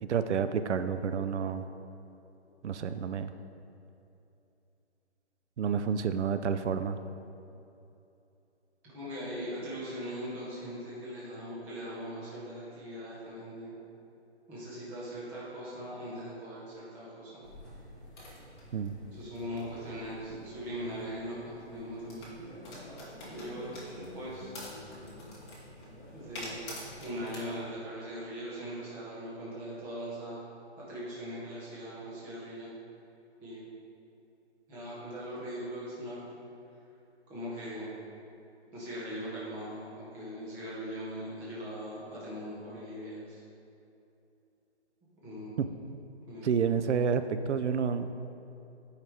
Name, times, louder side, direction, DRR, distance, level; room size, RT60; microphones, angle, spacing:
voice 1, 0.0-1.7 2.6-3.3 5.6-7.0 18.7-19.0 45.6-45.7 46.4-48.1, right 6 dB, 80° right, 10 dB, 0.5 m, -29 dB
voice 2, 8.8-13.8 14.5-17.4 19.0-22.3 23.2-24.5 26.1-26.6 27.0-30.5 30.8-32.7 33.4-33.6 34.7-36.3 37.3-37.9 38.7-43.4 45.2-45.6 46.3-46.5, equal, 5° right, -8 dB, 0.6 m, -40 dB
sound 1, 17.4-27.4, left 1 dB, 25° left, 1.4 m, -46 dB
9.2 x 4.8 x 3.5 m, 2.8 s
hypercardioid pair, 155°, 34 cm